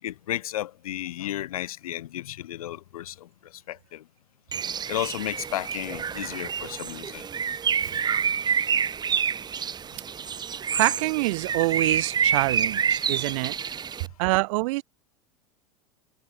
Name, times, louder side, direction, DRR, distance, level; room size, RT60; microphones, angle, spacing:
voice 1, 0.0-4.1 4.9-7.3 7.8-7.9, left 13 dB, 70° left, 4.1 m, -33 dB
Bird, 4.5-14.1, right 7 dB, 20° right, 1.1 m, -28 dB
voice 2, 10.8-13.7 14.2-14.8, right 23 dB, 55° right, 1.0 m, -26 dB
figure-of-eight pair, 85°, 19 cm